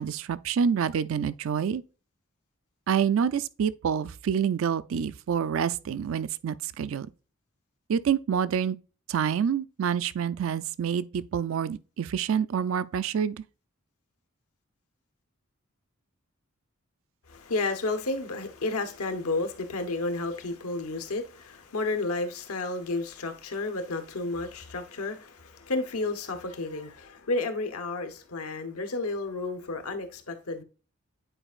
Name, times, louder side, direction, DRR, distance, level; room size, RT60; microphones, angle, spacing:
voice 1, 0.0-1.8 2.9-7.1 7.9-8.8 9.1-13.4, right 7 dB, 65° right, 0.3 m, -27 dB
voice 2, 17.3-30.6, left 2 dB, 85° left, 1.0 m, -32 dB
9.0 x 4.4 x 2.4 m
head